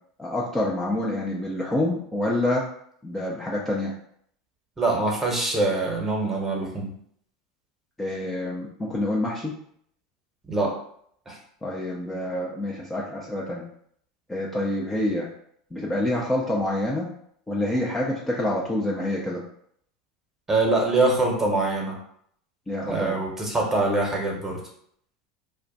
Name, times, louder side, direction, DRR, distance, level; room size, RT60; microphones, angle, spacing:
voice 1, 0.2-2.6 3.0-3.9 8.0-9.5 11.6-13.6 14.3-15.3 15.7-17.1 17.5-19.4 22.7-23.2, left 1 dB, 10° left, -4 dB, 0.6 m, -27 dB
voice 2, 4.8-6.9 10.5-10.7 11.3-11.4 20.5-22.0 22.9-24.6, right 2 dB, 15° right, -1 dB, 1.1 m, -24 dB
2.4 x 2.2 x 3.9 m, 0.66 s
hypercardioid pair, 85°, 2 cm